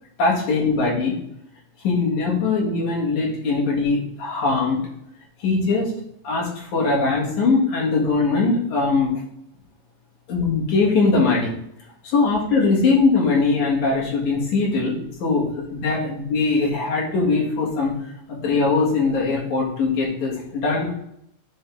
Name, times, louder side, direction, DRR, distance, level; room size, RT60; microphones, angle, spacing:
voice 1, 0.2-1.1 1.8-4.9 5.4-5.9 6.2-9.2 10.3-11.5 12.0-17.9 18.4-20.9, left 3 dB, 75° left, -4 dB, 3.2 m, -21 dB
11.0 x 3.8 x 3.4 m, 0.74 s
omnidirectional pair, 3.4 m